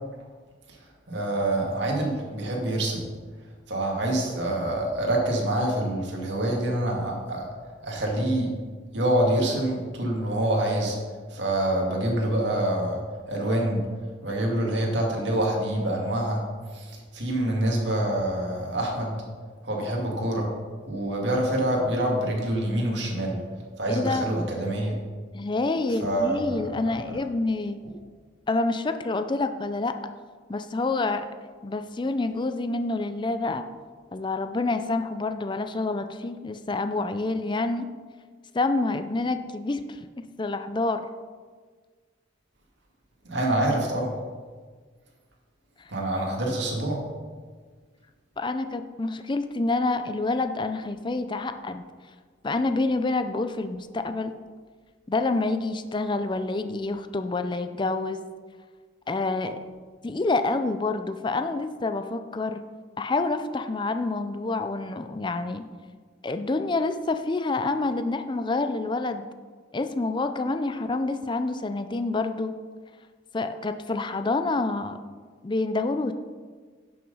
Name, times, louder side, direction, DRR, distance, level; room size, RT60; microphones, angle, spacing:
voice 1, 1.1-3.1 3.7-7.5 7.8-8.5 8.9-11.0 11.3-13.0 13.3-13.9 14.2-16.4 16.7-19.2 19.6-20.5 20.8-23.4 23.8-25.0 26.0-27.2 43.2-44.2 45.9-47.0, right 1 dB, 65° right, -1 dB, 2.2 m, -26 dB
voice 2, 23.9-24.3 25.3-27.8 28.5-30.0 30.5-31.3 31.6-33.7 34.1-37.9 38.5-40.0 40.4-41.1 48.4-51.8 52.4-54.3 55.1-58.3 59.1-59.6 60.0-62.6 63.0-65.6 66.2-69.3 69.7-72.5 73.3-75.0 75.4-76.1, left 3 dB, 25° left, 9 dB, 0.4 m, -27 dB
11.0 x 6.2 x 5.4 m, 1.5 s
head